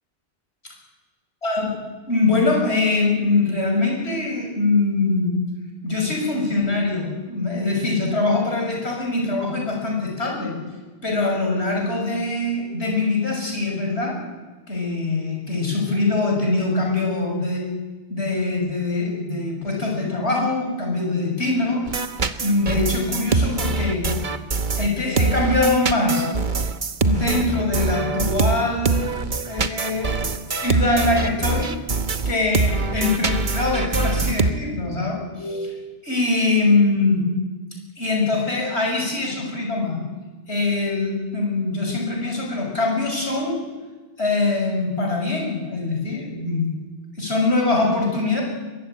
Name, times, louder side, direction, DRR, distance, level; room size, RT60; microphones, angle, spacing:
voice 1, 2.1-5.3 5.8-10.5 11.0-14.2 14.7-17.6 18.1-21.8 22.4-24.0 24.8-26.3 27.0-29.1 29.5-31.7 32.2-37.2 38.0-40.0 40.5-43.6 44.2-46.7 47.2-48.4, left 3 dB, 80° left, 0 dB, 6.3 m, -23 dB
sound 1, 21.8-34.5, right 3 dB, 45° right, 1.3 m, -23 dB
22.5 x 21.0 x 9.1 m, 1.3 s
omnidirectional pair, 1.1 m